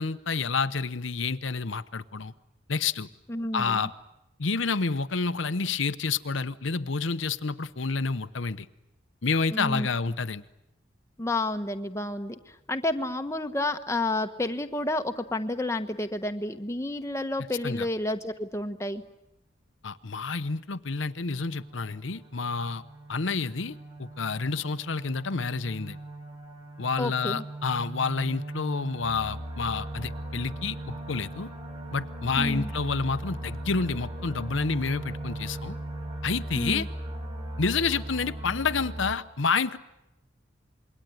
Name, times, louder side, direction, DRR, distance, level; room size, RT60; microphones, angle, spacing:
voice 1, 0.0-2.3 2.7-3.1 3.5-3.9 4.4-8.7 9.2-10.4 17.6-17.9 19.8-22.8 23.1-26.0 26.8-31.5 31.9-35.8 36.2-36.9 37.6-39.8, left 4 dB, 80° left, 11 dB, 0.9 m, -29 dB
voice 2, 3.3-3.9 9.5-9.9 11.2-19.0 27.0-27.4 32.4-32.7 36.5-36.9, left 2 dB, 15° left, 6 dB, 1.2 m, -30 dB
sound 1, 21.1-39.2, right 1 dB, 25° right, 6.1 m, -39 dB
27.0 x 22.0 x 9.4 m, 0.88 s
head